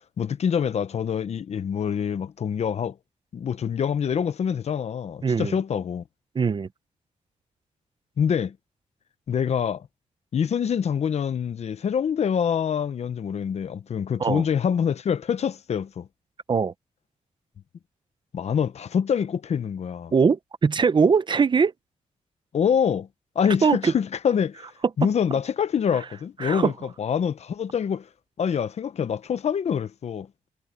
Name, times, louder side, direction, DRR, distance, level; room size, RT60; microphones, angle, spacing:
voice 1, 0.2-3.0 3.3-6.0 8.2-8.6 9.3-9.9 10.3-16.1 18.3-20.1 22.5-23.1 23.3-24.7 25.0-26.7 27.0-28.1 28.4-30.3, left 7 dB, 60° left, 1.0 m, -25 dB
voice 2, 5.2-5.6 6.3-6.7 14.2-14.4 16.5-16.7 20.1-21.7 23.6-23.9 26.4-26.7, right 5 dB, 40° right, 0.7 m, -21 dB
cardioid pair, 90°, 12 cm